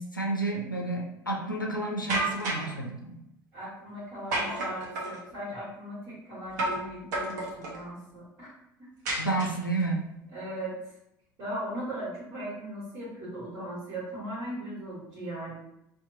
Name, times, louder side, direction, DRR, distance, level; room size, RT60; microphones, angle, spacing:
voice 1, 0.0-3.2 9.2-10.0, right 2 dB, 90° left, 0 dB, 0.4 m, -30 dB
sound 1, 2.1-2.8 4.3-5.2 6.6-6.9 7.1-7.8 9.1-9.8, right 2 dB, 65° right, 0.8 m, -31 dB
voice 2, 3.5-8.5 10.3-10.8 11.4-15.6, right 1 dB, 45° right, -8 dB, 1.5 m, -38 dB
2.8 x 2.2 x 3.8 m, 0.80 s
figure-of-eight pair, 65°, 10 cm